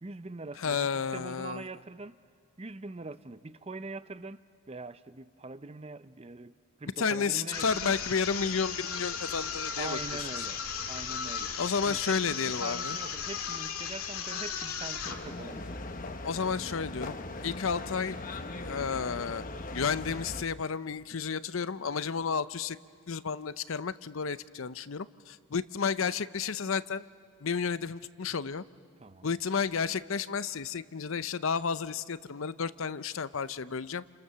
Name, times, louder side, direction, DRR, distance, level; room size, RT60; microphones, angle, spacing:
voice 1, 0.0-2.1 2.6-4.4 4.7-7.9 9.8-11.5 11.8-15.8 29.0-29.3, right 3 dB, 30° right, 0.6 m, -43 dB
voice 2, 0.6-1.6 7.0-10.0 10.4-10.5 11.6-13.0 16.2-18.2 18.6-19.4 19.7-22.8 23.1-27.0 27.4-28.6 29.2-34.0, left 6 dB, 70° left, 0.7 m, -32 dB
sound 1, 7.5-15.3, left 6 dB, 90° left, 2.0 m, -36 dB
sound 2, 15.0-20.4, left 2 dB, 40° left, 1.2 m, -39 dB
29.5 x 29.0 x 6.9 m
head